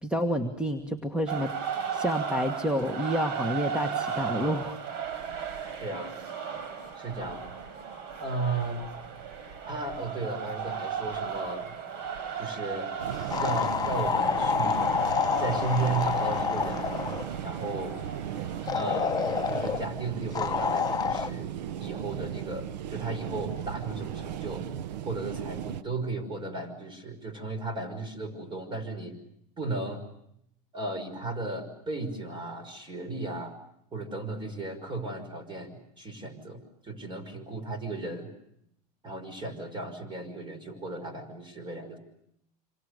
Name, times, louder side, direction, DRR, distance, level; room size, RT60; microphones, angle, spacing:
voice 1, 0.0-1.5 1.9-4.8, equal, 5° right, 7 dB, 1.6 m, -29 dB
sound 1, 1.3-19.8, right 7 dB, 60° right, 4.4 m, -36 dB
voice 2, 5.8-6.2 7.0-7.5 8.2-8.9 9.7-11.8 12.4-12.9 13.4-14.9 15.4-17.0 17.4-18.0 18.7-21.5 21.8-24.7 25.0-29.2 29.6-30.0 30.7-33.5 33.9-38.3 39.0-42.0, right 2 dB, 20° right, 11 dB, 5.7 m, -35 dB
sound 2, 13.0-25.8, right 10 dB, 90° right, 0.9 m, -36 dB
sound 3, 13.3-17.3 18.7-19.8 20.3-21.3, left 6 dB, 20° left, 1.0 m, -28 dB
27.0 x 26.5 x 6.7 m, 0.76 s
supercardioid pair, 120°, 21 cm